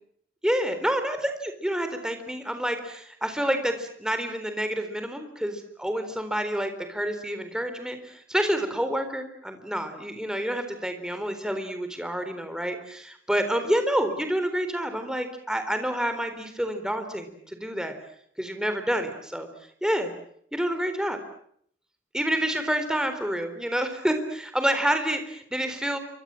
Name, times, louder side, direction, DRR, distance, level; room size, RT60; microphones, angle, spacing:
voice 1, 0.4-18.0 18.4-19.5 19.8-20.1 20.5-21.2 22.1-26.0, equal, 5° right, 7 dB, 3.9 m, -28 dB
28.0 x 25.0 x 7.7 m, 0.67 s
head